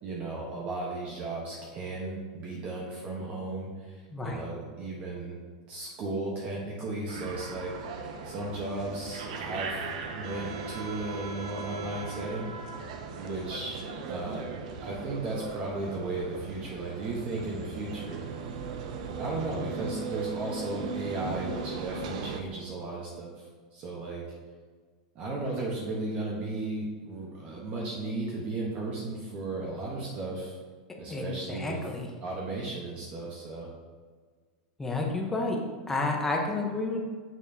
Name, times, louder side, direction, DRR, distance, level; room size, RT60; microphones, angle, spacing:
voice 1, 0.0-5.4 5.7-7.8 8.2-12.5 13.2-14.4 14.8-18.2 19.2-24.2 25.1-30.6 31.0-31.8 32.2-33.7, right 2 dB, 35° right, -3 dB, 1.1 m, -35 dB
voice 2, 4.1-4.4 31.1-32.1 34.8-35.6 35.9-37.0, left 2 dB, 10° left, 0 dB, 0.9 m, -30 dB
sound 1, 7.1-22.4, right 5 dB, 70° right, 0.7 m, -38 dB
6.7 x 6.0 x 2.8 m, 1.5 s
supercardioid pair, 145°, 4 cm